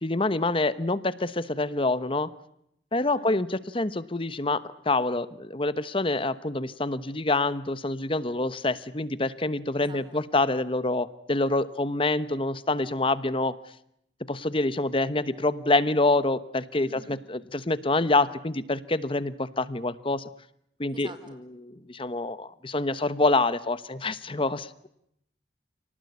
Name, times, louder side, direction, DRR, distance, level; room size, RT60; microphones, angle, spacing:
voice 1, 0.0-2.3 2.9-13.6 14.3-20.3 20.8-21.1 21.6-24.9, left 2 dB, 30° left, 15 dB, 1.1 m, -26 dB
voice 2, 9.8-10.2 16.8-17.2 20.9-21.2, right 2 dB, 30° right, 8 dB, 4.8 m, -47 dB
29.0 x 19.0 x 9.6 m, 0.76 s
head